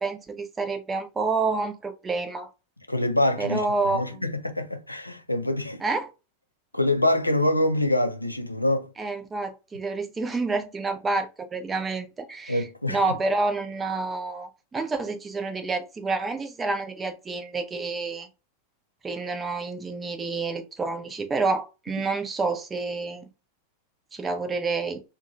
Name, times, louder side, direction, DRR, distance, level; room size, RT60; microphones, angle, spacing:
voice 1, 0.0-2.5 3.4-4.2 5.8-6.1 9.0-12.6 12.9-18.3 19.0-23.3 24.1-25.0, right 3 dB, 15° right, 0.5 m, -28 dB
voice 2, 2.9-5.8 6.7-8.9 12.5-13.2, left 1 dB, 85° left, 0.4 m, -25 dB
2.6 x 2.2 x 2.6 m
figure-of-eight pair, 90°, 0 cm